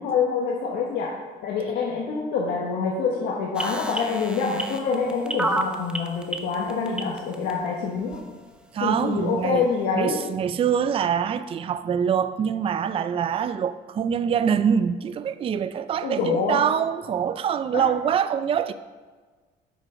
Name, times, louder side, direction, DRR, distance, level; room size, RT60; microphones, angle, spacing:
voice 1, 0.0-8.2 8.8-10.2 16.0-16.6 17.7-17.9, left 5 dB, 80° left, 1.4 m, -26 dB
sound 1, 3.5-7.5 8.1-8.2, right 1 dB, 5° right, 0.8 m, -28 dB
voice 2, 8.7-9.7 9.9-18.7, right 8 dB, 35° right, 0.4 m, -24 dB
8.1 x 6.1 x 5.6 m
cardioid pair, 110°, 17 cm